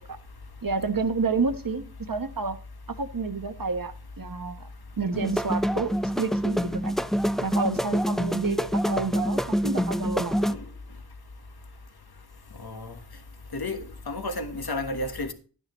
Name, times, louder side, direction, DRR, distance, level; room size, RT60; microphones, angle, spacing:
voice 1, 0.6-2.6 2.9-4.7 5.0-7.0 7.4-10.5, right 4 dB, 55° right, 1.1 m, -30 dB
sound 1, 5.1-10.5, equal, ahead, 0.5 m, -26 dB
voice 2, 12.6-12.9 13.5-13.8 14.1-15.3, left 2 dB, 65° left, 1.4 m, -31 dB
11.5 x 10.0 x 3.1 m
wide cardioid pair, 45°, 41 cm